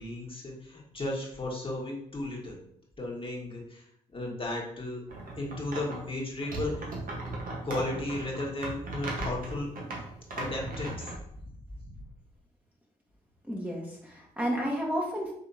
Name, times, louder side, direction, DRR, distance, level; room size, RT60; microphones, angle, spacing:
voice 1, 0.0-2.6 3.0-3.9 4.1-5.0 5.4-6.9 7.6-9.7 10.4-11.1 11.4-11.5 11.8-12.0, left 2 dB, 35° left, -3 dB, 1.6 m, -35 dB
sound 1, 5.1-6.0 6.4-11.2, right 2 dB, 60° right, 1.4 m, -37 dB
voice 2, 13.4-15.3, equal, 10° right, -3 dB, 1.4 m, -31 dB
5.1 x 3.4 x 2.8 m, 0.70 s
supercardioid pair, 50°, 16 cm